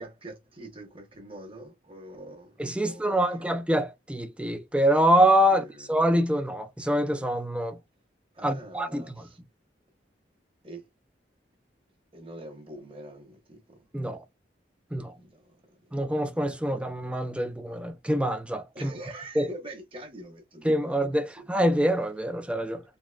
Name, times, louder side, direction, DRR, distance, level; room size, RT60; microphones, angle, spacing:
voice 1, 0.0-3.5 5.5-5.9 8.3-9.4 10.6-10.9 12.1-13.9 15.1-15.6 16.7-16.8 18.7-21.6, right 1 dB, 30° right, 1.1 m, -44 dB
voice 2, 2.6-7.8 8.4-9.2 13.9-14.2 14.9-15.1 15.9-18.9 19.4-19.5 20.6-22.8, equal, 5° right, 0.4 m, -25 dB
4.1 x 2.8 x 2.4 m
head